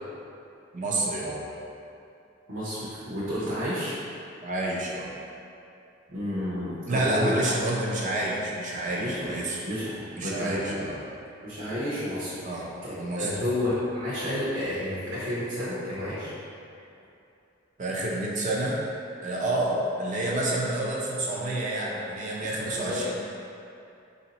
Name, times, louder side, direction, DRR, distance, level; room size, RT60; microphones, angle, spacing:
voice 1, 0.7-1.4 4.4-5.1 6.9-9.6 10.2-11.0 12.4-12.7 13.0-13.4 17.8-18.8 19.2-23.1, right 1 dB, 40° right, -3 dB, 0.5 m, -29 dB
voice 2, 2.5-3.9 6.1-7.4 9.0-10.8 11.4-12.6 13.1-16.3 22.7-23.0, left 1 dB, 75° right, -11 dB, 0.9 m, -31 dB
3.3 x 2.7 x 4.1 m, 2.7 s
head